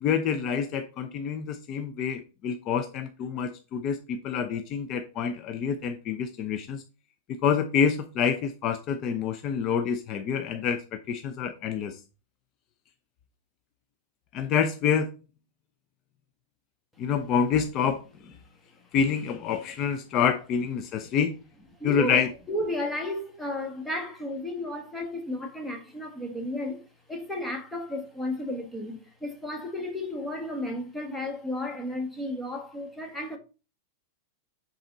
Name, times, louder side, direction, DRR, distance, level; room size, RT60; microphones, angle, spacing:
voice 1, 0.0-6.8 7.3-12.0 14.3-15.1 17.0-18.0 18.9-21.3 21.8-22.3, left 7 dB, 35° left, 0.8 m, -27 dB
voice 2, 21.8-33.4, left 1 dB, 5° left, 1.7 m, -33 dB
10.0 x 4.2 x 4.0 m
supercardioid pair, 145°, 0 cm